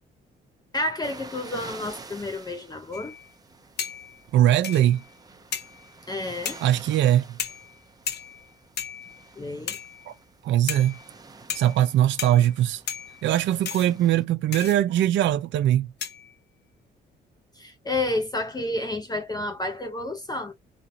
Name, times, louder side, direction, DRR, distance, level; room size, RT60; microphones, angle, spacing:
voice 1, 0.7-3.1 6.1-6.6 9.4-9.8 17.6-20.5, left 2 dB, 20° left, 0.6 m, -30 dB
onades matí, 1.0-14.2, right 3 dB, 20° right, 0.7 m, -48 dB
sound 1, 2.9-3.3 3.8-4.2 4.6-5.1 5.5-5.9 6.4-6.8 7.4-7.8 8.1-8.5 8.8-9.3 9.7-10.1 10.7-11.1 11.5-11.9 12.2-12.5 12.9-13.3 13.6-14.0 14.5-14.8 16.0-16.3, left 8 dB, 55° left, 0.7 m, -35 dB
voice 2, 4.3-5.0 6.6-7.4 10.1-10.2 10.4-11.0 11.5-12.8 13.2-15.9, right 12 dB, 70° right, 0.4 m, -21 dB
2.8 x 2.6 x 4.0 m
cardioid pair, 90°, 20 cm